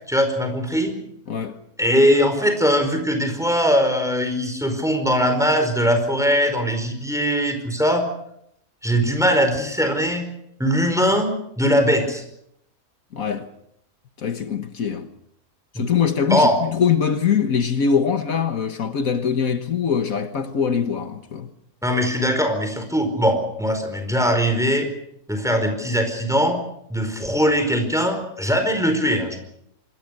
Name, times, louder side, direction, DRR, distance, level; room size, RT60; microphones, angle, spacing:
voice 1, 0.1-0.9 1.8-8.0 8.8-10.3 10.6-11.3 11.6-12.2 15.7-15.8 16.3-16.6 21.8-24.9 25.3-26.6 26.9-29.4, equal, ahead, 4.8 m, -20 dB
voice 2, 1.3-1.6 13.1-13.5 14.2-15.1 15.7-21.5, left 7 dB, 70° left, 1.7 m, -22 dB
26.5 x 21.5 x 6.6 m
omnidirectional pair, 1.5 m